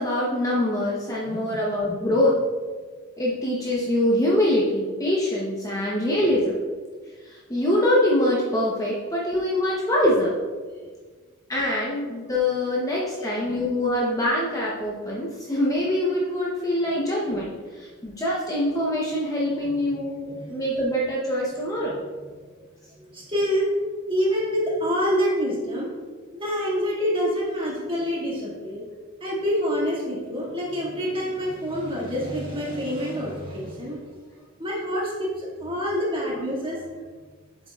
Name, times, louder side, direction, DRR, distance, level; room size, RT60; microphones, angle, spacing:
voice 1, 0.0-2.4 3.2-6.6 7.2-10.3 11.5-21.9, left 1 dB, 15° left, -5 dB, 0.8 m, -24 dB
voice 2, 1.3-1.6 1.9-2.2 10.7-10.9 16.9-17.0 19.6-19.7 20.3-20.6 21.6-21.7 22.9-23.7 24.1-25.9 26.3-28.8 29.2-34.0 34.6-36.8, equal, 25° right, -5 dB, 2.0 m, -27 dB
8.0 x 7.5 x 2.4 m, 1.5 s
head